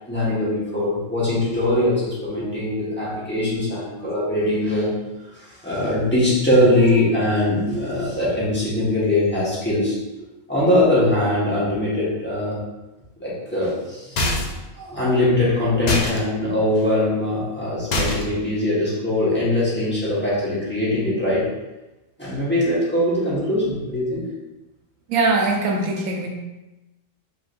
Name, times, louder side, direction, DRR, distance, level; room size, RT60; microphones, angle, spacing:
voice 1, 0.1-5.0 5.3-12.6 13.2-14.4 14.8-21.5 22.2-24.3, left 1 dB, 10° left, -9 dB, 1.4 m, -22 dB
sound 1, 14.2-14.7 15.9-16.2 17.9-18.4, left 1 dB, 55° left, 0.5 m, -23 dB
voice 2, 25.1-26.3, right 3 dB, 90° right, 1 dB, 1.2 m, -21 dB
4.9 x 3.3 x 2.6 m, 1.0 s
omnidirectional pair, 1.4 m